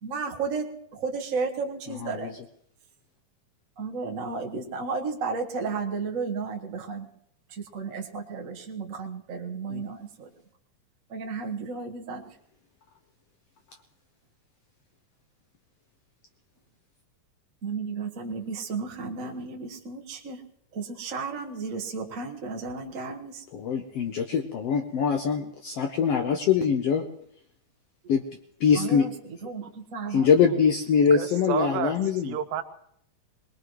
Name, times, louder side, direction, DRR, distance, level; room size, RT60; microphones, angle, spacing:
voice 1, 0.0-2.3 3.8-7.1 7.5-10.3 11.1-12.3 17.6-20.4 20.7-23.4 28.7-30.3, right 4 dB, 65° right, 1 dB, 0.7 m, -33 dB
voice 2, 23.5-27.1 28.1-28.2 28.6-29.1 30.1-32.3, left 6 dB, 75° left, 4 dB, 1.5 m, -23 dB
voice 3, 31.0-32.0 32.2-32.6, right 9 dB, 85° right, 8 dB, 2.6 m, -30 dB
22.5 x 20.5 x 3.1 m, 0.70 s
omnidirectional pair, 3.7 m